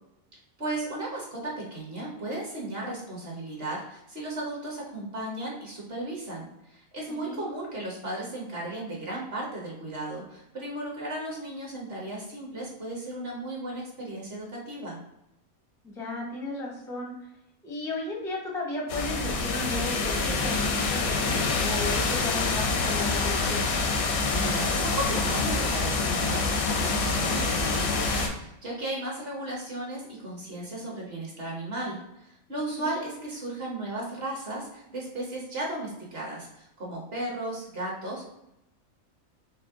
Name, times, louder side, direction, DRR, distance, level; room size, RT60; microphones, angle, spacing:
voice 1, 0.6-15.0 24.0-38.3, right 1 dB, 45° right, -3 dB, 1.1 m, -35 dB
voice 2, 15.8-17.1 17.6-23.7 32.8-32.9, left 2 dB, 5° left, -1 dB, 0.4 m, -34 dB
sound 1, 18.9-28.3, left 3 dB, 85° left, 1.1 m, -26 dB
4.4 x 2.1 x 3.6 m, 0.84 s
omnidirectional pair, 1.5 m